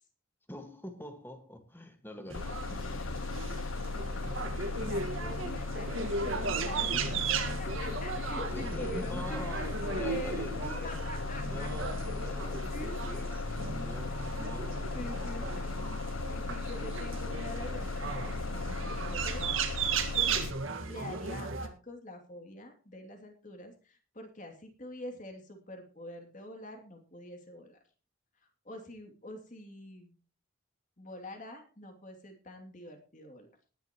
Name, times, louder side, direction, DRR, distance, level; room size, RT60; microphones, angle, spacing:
voice 1, 0.5-2.6 8.5-11.0 11.4-15.7 16.7-16.9, left 1 dB, 10° left, 1.7 m, -46 dB
Bus, 2.3-20.5, left 3 dB, 80° left, 0.7 m, -37 dB
sound 1, 2.3-21.7, right 5 dB, 75° right, 1.7 m, -36 dB
voice 2, 3.5-3.9 4.8-7.0 7.3-10.5 10.8-11.7 12.4-13.3 14.9-15.8 16.3-18.4 18.8-19.5 20.9-27.8 28.4-30.2 31.0-33.5, left 1 dB, 40° left, 2.7 m, -45 dB
20.0 x 10.5 x 3.0 m
head